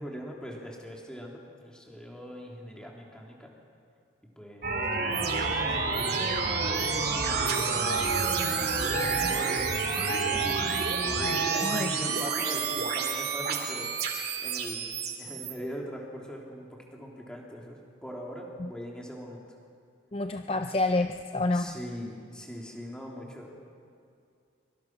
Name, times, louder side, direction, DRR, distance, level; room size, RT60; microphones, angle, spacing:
voice 1, 0.0-3.5 4.4-6.1 6.5-8.1 8.5-9.8 10.3-13.9 14.4-19.4 21.5-23.6, equal, 5° left, -2 dB, 3.1 m, -42 dB
sound 1, 4.6-15.5, right 4 dB, 50° right, 2.7 m, -29 dB
sound 2, 7.8-11.7, right 5 dB, 50° left, 4.7 m, -33 dB
voice 2, 11.6-11.9 18.6-18.7 20.1-21.8, left 2 dB, 30° left, 8 dB, 0.5 m, -28 dB
25.0 x 24.0 x 6.1 m, 2.4 s
head